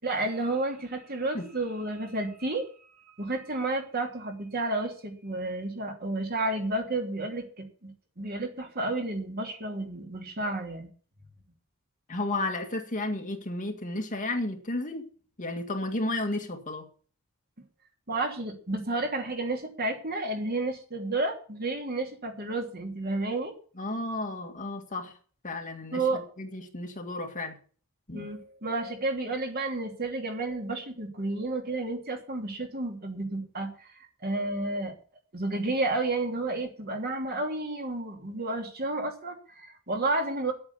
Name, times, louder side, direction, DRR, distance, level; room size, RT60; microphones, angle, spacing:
voice 1, 0.0-2.7 3.2-10.9 18.1-23.5 25.9-26.2 28.1-33.9 34.2-34.9 35.3-40.5, right 2 dB, 45° right, 3.0 m, -31 dB
voice 2, 12.1-15.1 15.4-16.8 23.8-25.1 25.4-26.0 26.4-27.6 28.1-28.3, left 2 dB, 40° left, 2.1 m, -32 dB
9.6 x 8.7 x 8.4 m
head